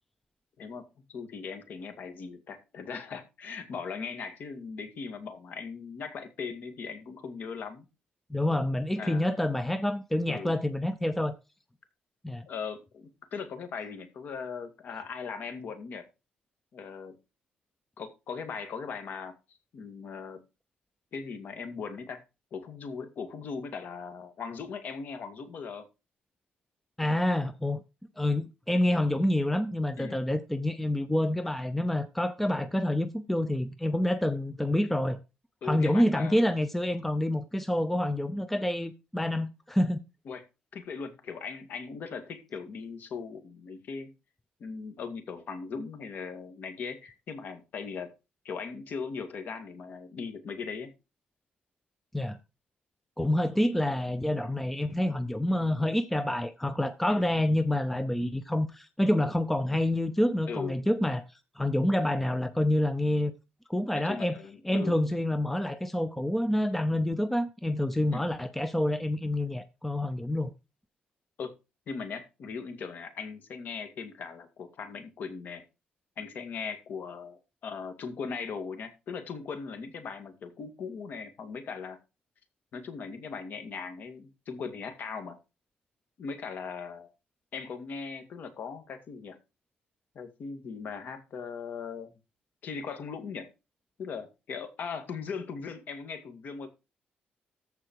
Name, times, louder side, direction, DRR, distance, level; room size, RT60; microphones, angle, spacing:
voice 1, 0.6-7.9 9.0-9.5 10.3-10.5 12.5-16.1 16.7-17.1 18.0-20.4 21.1-22.2 22.5-25.9 30.0-30.2 35.6-36.4 40.3-40.4 40.7-44.1 44.6-48.1 48.4-50.9 54.4-54.6 57.1-57.2 60.5-60.8 63.9-65.0 68.1-68.3 71.4-71.5 71.9-75.6 76.2-82.0 82.7-85.4 86.2-87.1 87.5-89.4 90.1-92.1 92.6-93.5 94.0-96.7, left 5 dB, 55° left, 2.3 m, -39 dB
voice 2, 8.3-11.4 12.2-12.5 27.0-27.8 28.2-35.2 35.6-40.0 52.1-52.4 53.2-61.2 61.6-63.3 63.7-64.4 64.6-70.5, left 1 dB, 5° left, 0.6 m, -27 dB
14.5 x 4.8 x 4.7 m
cardioid pair, 140°, 4 cm